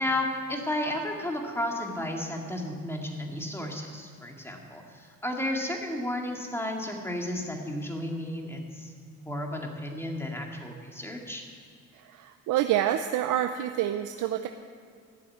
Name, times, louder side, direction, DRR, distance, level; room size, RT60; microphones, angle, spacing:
voice 1, 0.0-11.4, left 1 dB, 10° left, 1 dB, 2.3 m, -33 dB
voice 2, 11.9-14.5, right 11 dB, 85° right, 8 dB, 0.6 m, -27 dB
13.5 x 7.5 x 9.3 m, 2.2 s
cardioid pair, 90°, 30 cm